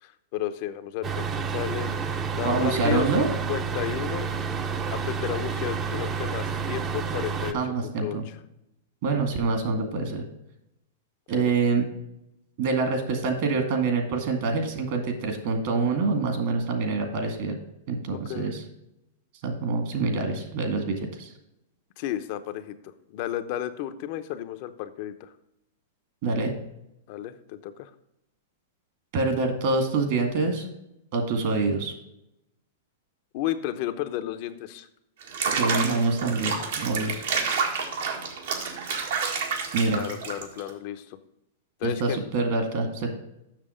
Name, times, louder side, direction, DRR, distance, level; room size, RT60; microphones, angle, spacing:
voice 1, 0.0-1.9 2.3-4.3 4.9-8.4 11.3-11.5 18.1-18.5 22.0-25.3 27.1-27.9 33.3-34.9 39.9-41.2 41.8-42.2, left 12 dB, 50° left, 10 dB, 0.7 m, -33 dB
sound 1, 1.0-7.5, right 5 dB, 25° right, 0.7 m, -29 dB
voice 2, 2.4-3.3 7.5-8.2 9.0-10.2 11.3-11.9 12.6-17.6 17.9-18.6 19.4-21.3 26.2-26.5 29.1-30.7 31.1-31.9 35.5-37.2 39.7-40.0 41.8-43.1, right 3 dB, 55° right, 5 dB, 2.1 m, -26 dB
Water / Bathtub (filling or washing), 35.2-40.7, right 5 dB, 75° right, 1.7 m, -29 dB
7.5 x 6.2 x 5.1 m, 0.84 s
hypercardioid pair, 135°, 0 cm